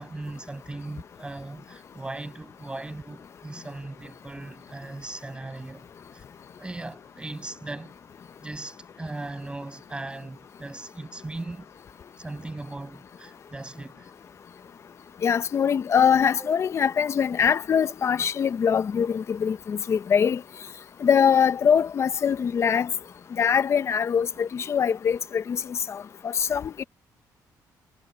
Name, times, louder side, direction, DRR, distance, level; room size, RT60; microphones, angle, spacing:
voice 1, 0.0-5.9 6.1-6.3 6.6-7.9 8.4-11.7 12.2-14.1 16.4-16.5 17.8-17.9, right 2 dB, 15° right, 7.3 m, -38 dB
voice 2, 15.2-20.4 21.0-22.9 23.4-26.8, left 7 dB, 40° left, 0.7 m, -23 dB
cardioid pair, 135°, 7 cm